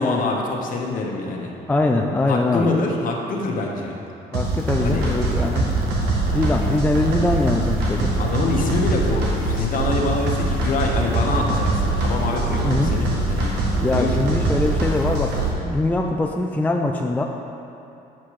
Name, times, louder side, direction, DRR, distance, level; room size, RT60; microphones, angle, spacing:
voice 1, 0.0-1.5 2.3-3.9 4.8-5.3 8.2-13.5 13.9-14.1, left 3 dB, 55° left, 0 dB, 1.3 m, -25 dB
voice 2, 1.7-2.8 4.3-5.7 6.3-8.1 12.6-12.9 13.8-17.2, left 2 dB, 10° left, 2 dB, 0.4 m, -22 dB
sound 1, 4.3-15.5, right 2 dB, 75° right, 1.6 m, -23 dB
8.7 x 5.7 x 4.8 m, 2.7 s
cardioid pair, 110°, 17 cm